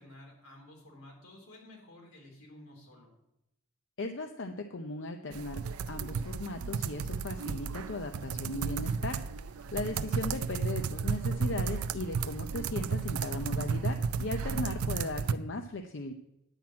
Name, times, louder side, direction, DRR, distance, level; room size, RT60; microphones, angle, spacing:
voice 1, 0.0-3.1, left 1 dB, 85° left, -1 dB, 3.9 m, -52 dB
voice 2, 4.0-5.6 5.9-9.2 9.5-16.1, left 2 dB, 55° left, 6 dB, 0.6 m, -37 dB
sound 1, 5.3-15.3, right 5 dB, 85° right, 0.5 m, -33 dB
9.9 x 6.0 x 8.5 m, 0.87 s
head